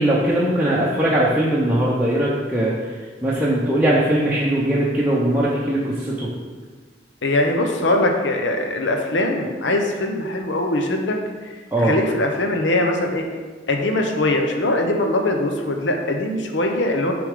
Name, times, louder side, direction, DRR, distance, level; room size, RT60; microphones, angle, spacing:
voice 1, 0.0-2.9 3.2-6.3 11.7-12.0, right 1 dB, 10° right, -8 dB, 0.7 m, -20 dB
voice 2, 7.2-11.2 11.8-13.3 13.7-17.1, left 1 dB, 90° left, 3 dB, 0.8 m, -21 dB
6.8 x 3.5 x 5.0 m, 1.4 s
head